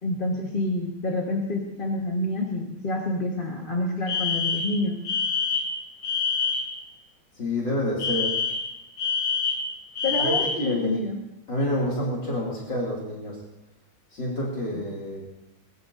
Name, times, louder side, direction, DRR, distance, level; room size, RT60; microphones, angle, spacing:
voice 1, 0.0-5.0 10.0-11.2 14.7-14.8, left 1 dB, 25° left, -1 dB, 1.5 m, -28 dB
Alarm, 4.1-6.8 8.0-10.7, left 5 dB, 75° left, 2.4 m, -26 dB
voice 2, 7.3-8.4 10.2-11.0 11.5-13.4 14.1-15.3, equal, 55° left, -5 dB, 3.4 m, -28 dB
21.0 x 20.5 x 2.7 m, 0.85 s
omnidirectional pair, 2.3 m